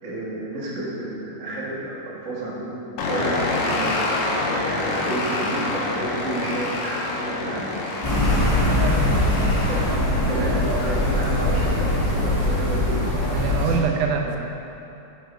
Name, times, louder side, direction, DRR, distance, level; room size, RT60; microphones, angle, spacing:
voice 1, 0.0-3.9 4.8-8.1 8.6-9.8 10.1-13.0 13.6-13.9 14.2-14.3, right 2 dB, 45° right, -8 dB, 0.9 m, -31 dB
sound 1, 3.0-11.7, left 2 dB, 85° left, 2.5 m, -27 dB
sound 2, 8.0-13.8, left 1 dB, 40° left, 0.8 m, -22 dB
voice 2, 8.7-9.0 13.3-14.4, right 6 dB, 80° right, 3 dB, 2.0 m, -25 dB
7.9 x 5.5 x 4.4 m, 2.9 s
omnidirectional pair, 3.7 m